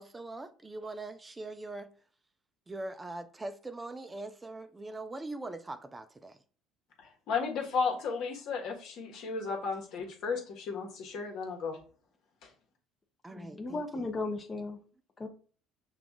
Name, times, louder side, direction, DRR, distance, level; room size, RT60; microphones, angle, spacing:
voice 1, 0.0-1.9 2.7-6.4 13.2-13.8, right 2 dB, 20° right, 0.4 m, -42 dB
voice 2, 7.0-11.8 12.4-12.5, left 5 dB, 65° left, 1.3 m, -34 dB
voice 3, 13.3-14.8 15.2-15.3, left 3 dB, 25° left, 0.7 m, -36 dB
5.8 x 2.4 x 3.6 m
supercardioid pair, 90°, 0 cm